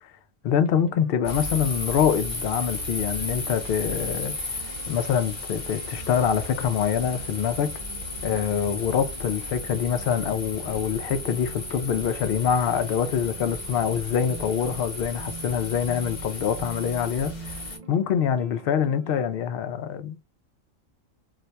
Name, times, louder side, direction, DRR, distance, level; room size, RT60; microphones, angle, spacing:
voice 1, 0.4-4.4 4.6-7.8 8.2-17.6 17.9-20.2, left 8 dB, 65° left, 0.6 m, -25 dB
sound 1, 0.6-19.2, right 4 dB, 55° right, 0.5 m, -45 dB
sound 2, 1.2-17.8, left 2 dB, 30° left, 0.9 m, -35 dB
2.5 x 2.2 x 4.0 m
omnidirectional pair, 1.4 m